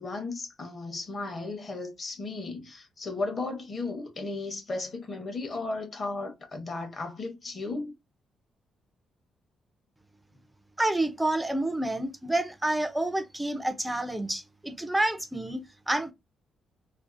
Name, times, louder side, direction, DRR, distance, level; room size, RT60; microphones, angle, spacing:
voice 1, 0.0-7.9, left 3 dB, 30° left, 0.8 m, -35 dB
voice 2, 10.8-16.1, right 1 dB, 5° right, 0.4 m, -29 dB
2.5 x 2.4 x 2.4 m
cardioid pair, 160°, 0 cm